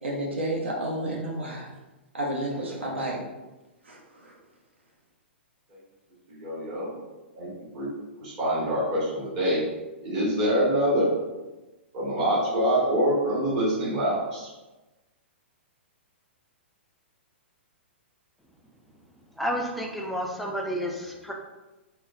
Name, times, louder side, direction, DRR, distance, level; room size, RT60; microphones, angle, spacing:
voice 1, 0.0-1.7 2.1-3.2 3.8-4.3, right 1 dB, 75° right, -2 dB, 0.9 m, -31 dB
voice 2, 6.3-6.9 7.3-7.9 8.2-9.6 10.0-11.1 11.9-14.5, equal, 40° right, -8 dB, 1.4 m, -25 dB
voice 3, 19.4-21.3, equal, ahead, -1 dB, 0.4 m, -30 dB
3.6 x 2.2 x 2.5 m, 1.1 s
figure-of-eight pair, 110°, 6 cm